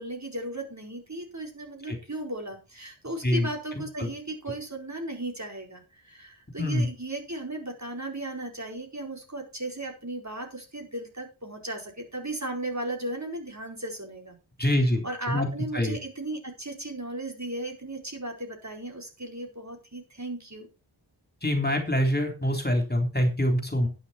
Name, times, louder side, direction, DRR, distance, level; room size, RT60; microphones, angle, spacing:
voice 1, 0.0-14.4 14.7-20.7, right 1 dB, 35° right, 2 dB, 4.4 m, -36 dB
voice 2, 14.6-15.5 15.7-16.0 21.4-23.9, left 1 dB, 20° left, 4 dB, 3.7 m, -25 dB
11.5 x 10.0 x 4.4 m, 0.29 s
wide cardioid pair, 60°, 47 cm